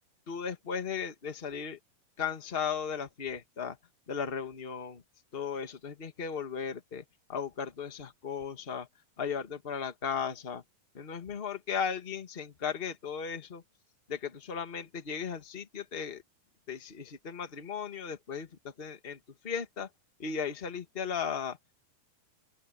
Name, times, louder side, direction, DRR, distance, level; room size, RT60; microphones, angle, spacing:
voice 1, 0.3-1.8 2.2-3.8 4.1-5.0 5.3-7.0 7.3-8.9 9.2-10.6 10.9-13.6 14.1-16.2 16.7-19.2 19.4-19.9 20.2-21.6, left 6 dB, 55° left, 0.6 m, -36 dB
open air
omnidirectional pair, 4.1 m